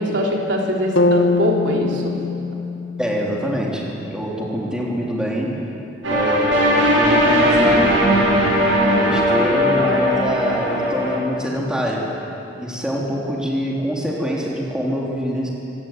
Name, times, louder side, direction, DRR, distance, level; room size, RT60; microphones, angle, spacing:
voice 1, 0.0-2.1, equal, 65° right, -1 dB, 3.7 m, -22 dB
sound 1, 1.0-5.0, left 3 dB, 85° left, 2.1 m, -24 dB
voice 2, 3.0-5.6 6.1-8.5 8.9-12.3 12.6-15.5, equal, 5° right, -4 dB, 3.6 m, -25 dB
sound 2, 6.0-11.2, equal, 80° right, 7.7 m, -18 dB
25.5 x 17.5 x 9.3 m, 2.8 s
head